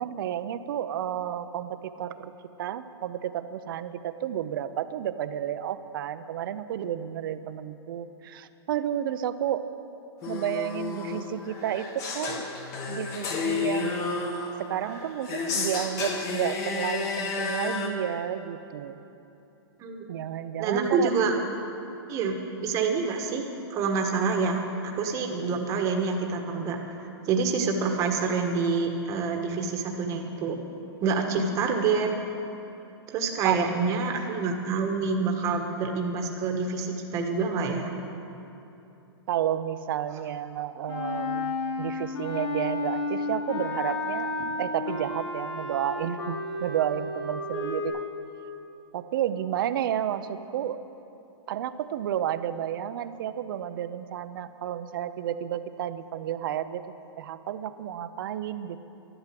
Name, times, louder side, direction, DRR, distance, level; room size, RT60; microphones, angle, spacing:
voice 1, 0.0-2.3 2.6-9.7 10.3-12.5 12.9-14.1 14.6-19.0 20.1-21.3 33.4-33.7 39.3-44.3 44.6-48.0 48.9-50.8 51.5-56.8 57.2-58.8, right 10 dB, 50° right, 12 dB, 0.7 m, -31 dB
sound 1, 10.2-17.9, left 4 dB, 20° left, 1.3 m, -31 dB
voice 2, 20.6-21.3 22.1-27.0 27.3-30.6 31.0-32.1 33.1-37.9, right 4 dB, 20° right, 3 dB, 1.4 m, -27 dB
Wind instrument woodwind instrument, 40.9-47.9, left 2 dB, 75° left, 4.1 m, -32 dB
12.5 x 12.0 x 7.7 m, 2.9 s
hypercardioid pair, 160°, 14 cm